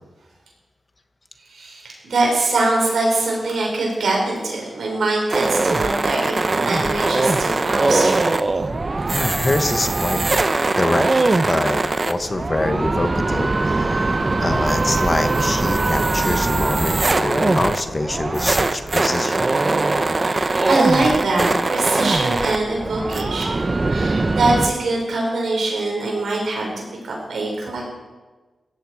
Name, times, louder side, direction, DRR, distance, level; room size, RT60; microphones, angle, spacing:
voice 1, 1.5-8.3 20.2-23.6 23.9-27.8, right 2 dB, 85° right, -1 dB, 5.5 m, -23 dB
sound 1, 5.3-24.7, right 2 dB, 35° right, 0.9 m, -21 dB
voice 2, 9.1-10.2 10.7-11.1 11.5-11.8 12.0-19.5, left 2 dB, 30° left, 8 dB, 1.2 m, -24 dB
17.0 x 14.5 x 4.8 m, 1.2 s
cardioid pair, 70°, 0 cm